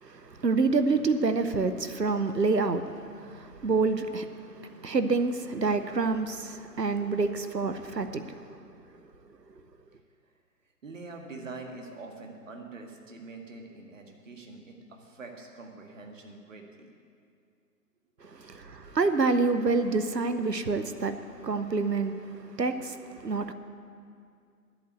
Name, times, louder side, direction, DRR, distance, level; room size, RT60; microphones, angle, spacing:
voice 1, 0.0-8.6 18.2-23.5, right 4 dB, 90° right, 10 dB, 0.9 m, -28 dB
voice 2, 10.8-16.9 18.4-18.6 18.8-19.0, right 3 dB, 50° right, 2 dB, 1.8 m, -45 dB
11.0 x 8.2 x 8.0 m, 2.3 s
figure-of-eight pair, 135°, 48 cm